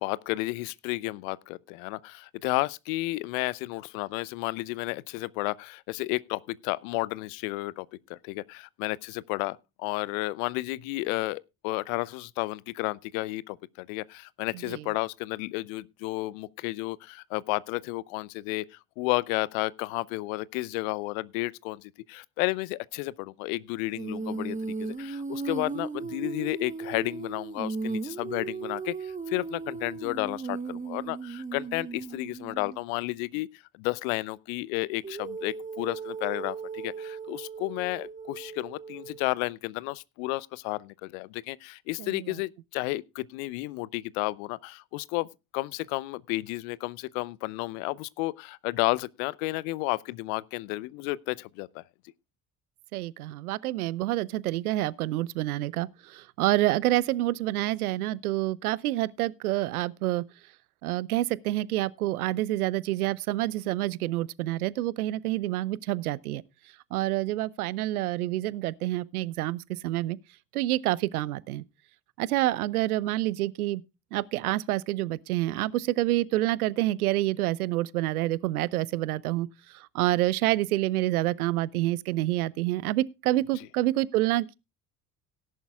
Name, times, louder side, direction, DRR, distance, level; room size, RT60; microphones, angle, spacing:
voice 1, 0.0-45.3 45.5-51.8, left 21 dB, 65° left, 0.7 m, -32 dB
Female singing, 23.9-32.8 35.0-39.2, right 4 dB, 15° right, 1.5 m, -36 dB
voice 2, 42.0-42.3 52.9-60.2 60.8-66.4 66.9-70.2 70.5-71.6 72.2-73.8 74.1-79.5 79.7-84.5, right 16 dB, 75° right, 0.7 m, -28 dB
17.5 x 11.0 x 2.3 m
figure-of-eight pair, 55°, 44 cm